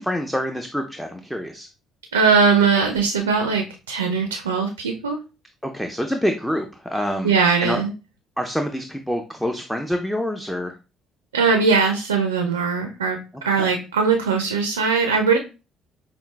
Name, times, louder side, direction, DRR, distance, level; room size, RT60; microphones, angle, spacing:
voice 1, 0.0-1.7 5.6-7.3 7.6-7.8 8.4-10.7 13.6-13.7, equal, 5° left, 5 dB, 0.5 m, -26 dB
voice 2, 2.1-5.2 7.2-7.9 11.3-15.4, right 5 dB, 85° right, 4 dB, 0.4 m, -20 dB
5.4 x 2.4 x 2.3 m, 0.32 s
figure-of-eight pair, 50°, 0 cm